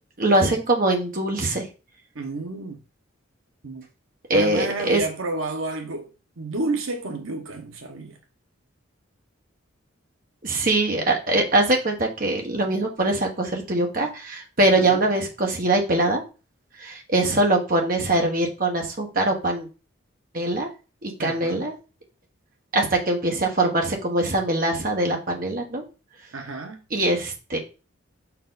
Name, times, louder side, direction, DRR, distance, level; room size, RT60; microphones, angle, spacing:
voice 1, 0.2-1.7 4.3-5.0 10.4-16.2 16.8-19.7 20.3-20.7 21.0-21.7 22.7-25.8 26.9-27.6, right 2 dB, 45° right, 1.2 m, -22 dB
voice 2, 2.1-2.8 3.6-3.9 4.3-6.1 6.4-8.2 14.8-15.0 21.2-21.7 26.3-26.8, right 2 dB, 80° right, 0.9 m, -30 dB
5.1 x 4.6 x 4.0 m
head